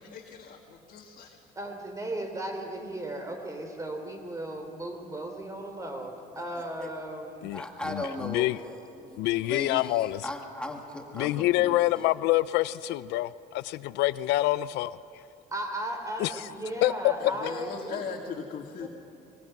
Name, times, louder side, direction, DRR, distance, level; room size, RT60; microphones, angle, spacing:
voice 1, 0.0-1.4 17.2-18.9, left 5 dB, 50° left, -1 dB, 2.0 m, -39 dB
voice 2, 1.6-7.5 15.5-18.0 18.8-18.9, right 1 dB, 20° right, 4 dB, 3.5 m, -36 dB
voice 3, 6.6-6.9 7.5-11.8, left 1 dB, 5° left, 1 dB, 2.2 m, -38 dB
voice 4, 7.4-8.6 9.2-10.2 11.1-15.0 16.2-16.3 16.8-17.1, left 17 dB, 90° left, 16 dB, 0.5 m, -26 dB
25.5 x 21.5 x 6.0 m, 2.6 s
cardioid pair, 110°, 17 cm